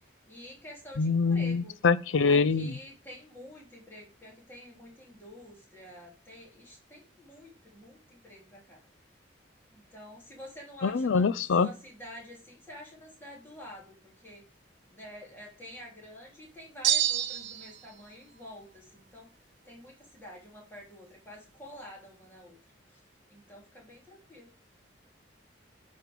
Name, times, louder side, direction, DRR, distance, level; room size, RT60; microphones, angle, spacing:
voice 1, 0.0-1.8 2.2-8.8 9.7-14.4 14.9-19.3 19.6-22.6 22.9-23.0 23.3-24.5, left 1 dB, 10° left, 3.1 m, -48 dB
voice 2, 1.0-2.7 10.8-11.7, left 4 dB, 85° left, 0.5 m, -24 dB
sound 1, 16.8-17.8, right 12 dB, 70° right, 0.7 m, -27 dB
9.3 x 4.4 x 5.1 m
head